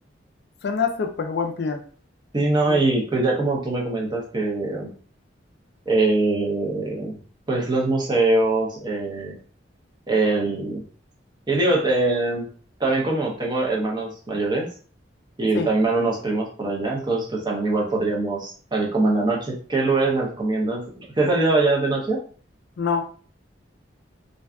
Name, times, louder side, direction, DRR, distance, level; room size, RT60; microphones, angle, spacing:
voice 1, 0.6-1.8 2.7-2.8 15.5-15.7 22.8-23.1, left 5 dB, 60° left, 5 dB, 0.4 m, -25 dB
voice 2, 2.3-4.9 5.9-7.2 7.5-9.3 10.1-10.8 11.5-12.5 12.8-14.7 15.4-22.2, right 2 dB, 25° right, -1 dB, 0.6 m, -23 dB
2.5 x 2.2 x 2.3 m, 0.43 s
head